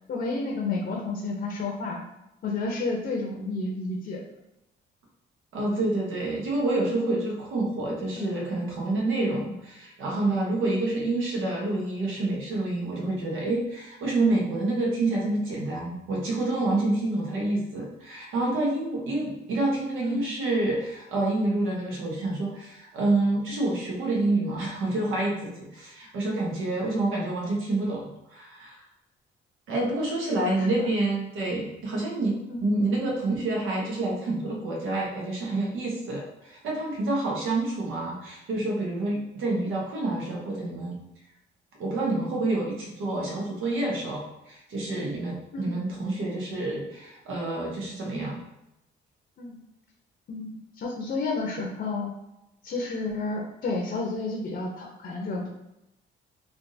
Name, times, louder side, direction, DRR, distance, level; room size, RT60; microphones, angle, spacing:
voice 1, 0.1-2.0 2.4-4.2 8.2-8.3 10.7-10.8 20.0-20.2 30.4-30.9 32.5-32.6 45.5-45.8 49.4-49.6 50.3-52.1 52.6-55.5, left 3 dB, 50° left, -1 dB, 0.7 m, -31 dB
voice 2, 5.5-28.8 29.7-41.0 41.8-48.4, right 2 dB, 85° right, -3 dB, 1.1 m, -28 dB
3.5 x 2.6 x 2.6 m, 0.90 s
cardioid pair, 90°, 20 cm